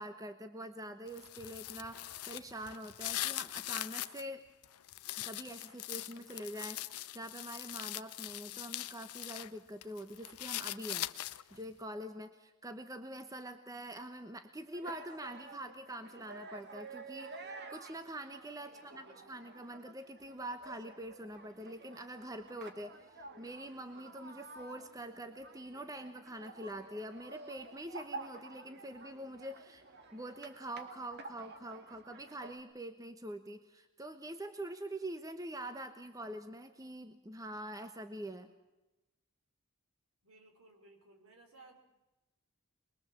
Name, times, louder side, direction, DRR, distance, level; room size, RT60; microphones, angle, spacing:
voice 1, 0.0-4.4 5.2-11.1 11.5-29.8 30.1-38.5, right 1 dB, 15° right, 8 dB, 0.9 m, -45 dB
sound 1, 1.1-4.2 4.6-9.5 9.8-11.6, left 14 dB, 90° left, 0.8 m, -41 dB
sound 2, 14.7-32.6, right 3 dB, 50° right, 1.9 m, -51 dB
voice 2, 18.6-19.4 40.2-41.8, right 2 dB, 70° right, 4 dB, 4.3 m, -60 dB
23.5 x 21.5 x 7.4 m, 1.0 s
head